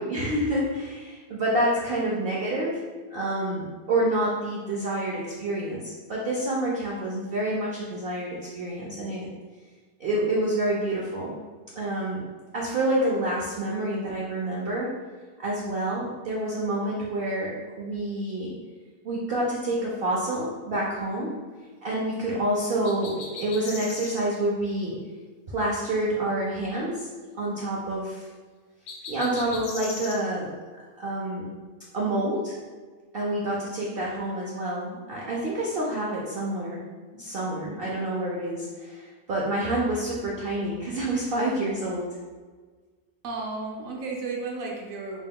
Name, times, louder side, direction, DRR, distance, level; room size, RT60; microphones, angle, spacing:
voice 1, 0.0-2.8 3.1-9.3 10.0-11.4 11.8-12.2 12.5-14.9 15.4-18.5 19.0-21.3 21.8-25.0 25.5-27.1 27.4-28.3 29.1-30.5 31.0-31.5 31.9-32.6 33.1-36.8 37.1-42.1, right 1 dB, 85° right, -4 dB, 0.5 m, -28 dB
sound 1, 22.8-24.2 28.9-30.2, left 3 dB, 65° left, 0.8 m, -38 dB
voice 2, 43.2-45.2, right 3 dB, 65° right, -1 dB, 0.9 m, -33 dB
5.4 x 3.0 x 2.2 m, 1.4 s
omnidirectional pair, 1.8 m